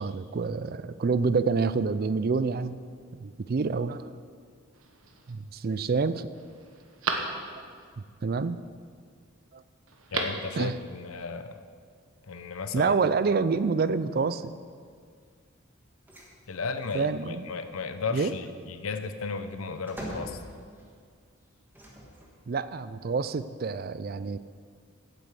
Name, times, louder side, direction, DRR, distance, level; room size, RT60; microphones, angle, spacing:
voice 1, 0.0-2.8 3.1-4.1 5.3-6.3 8.0-8.6 9.5-9.6 10.6-10.8 12.7-14.5 16.9-17.5 18.1-18.3 22.5-24.4, right 4 dB, 45° right, 14 dB, 0.4 m, -27 dB
Telephone, 4.7-5.3 5.9-6.0 6.3-7.9 9.9-10.5 10.8-10.9, right 4 dB, 75° right, 1.2 m, -35 dB
voice 2, 10.1-11.6 12.3-12.9 16.5-20.4, left 4 dB, 85° left, 9 dB, 0.8 m, -34 dB
sound 1, 16.1-16.3 16.7-17.2 18.5-21.0 21.7-22.5, equal, 10° right, 1.6 m, -43 dB
9.2 x 7.8 x 8.1 m, 2.1 s
head